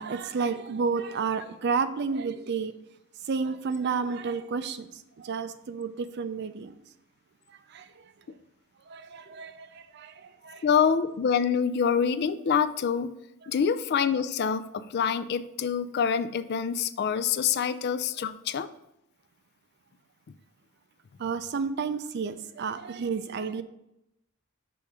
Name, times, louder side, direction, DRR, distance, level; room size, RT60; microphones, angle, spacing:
voice 1, 0.0-2.7 3.3-4.9 5.2-6.7 7.7-7.9 8.9-10.1 10.4-10.6 21.2-23.6, right 5 dB, 55° right, 0.4 m, -31 dB
voice 2, 10.6-13.1 13.5-18.7, left 7 dB, 50° left, 0.3 m, -26 dB
6.3 x 3.5 x 5.6 m
head